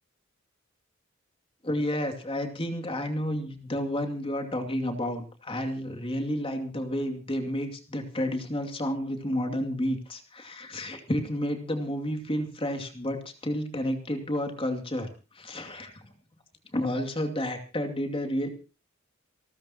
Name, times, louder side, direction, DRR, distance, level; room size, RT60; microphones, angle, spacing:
voice 1, 1.6-15.1 15.4-15.9 16.7-18.5, equal, 25° left, 4 dB, 2.5 m, -31 dB
29.0 x 13.0 x 2.9 m, 0.34 s
head